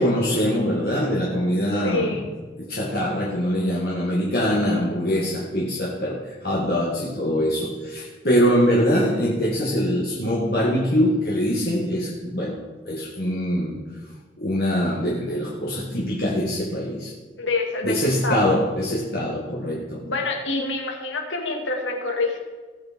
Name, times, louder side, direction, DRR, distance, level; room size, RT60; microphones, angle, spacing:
voice 1, 0.0-2.2 2.6-12.6 12.9-13.8 14.4-17.1 17.8-20.1, equal, 55° left, -5 dB, 2.0 m, -23 dB
voice 2, 1.8-2.3 17.4-18.0 18.2-18.5 20.1-22.4, left 3 dB, 85° left, 1 dB, 2.2 m, -26 dB
18.5 x 6.2 x 4.4 m, 1.4 s
head